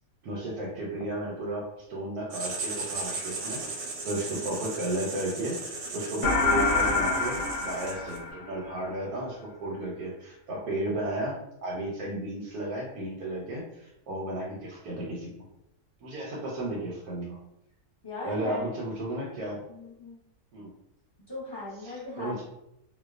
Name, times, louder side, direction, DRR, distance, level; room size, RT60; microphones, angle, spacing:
voice 1, 0.2-15.3 16.0-17.4 18.2-19.6 20.5-20.7 21.8-22.4, right 1 dB, 85° right, -5 dB, 1.1 m, -34 dB
Writing, 2.3-8.3, right 3 dB, 65° right, 0.8 m, -37 dB
voice 2, 4.3-4.6 18.0-18.7 19.7-20.2 21.3-22.4, left 2 dB, 40° left, -9 dB, 0.3 m, -39 dB
sound 1, 6.2-8.9, left 3 dB, 65° left, 0.9 m, -26 dB
2.6 x 2.0 x 2.3 m, 0.82 s
omnidirectional pair, 1.5 m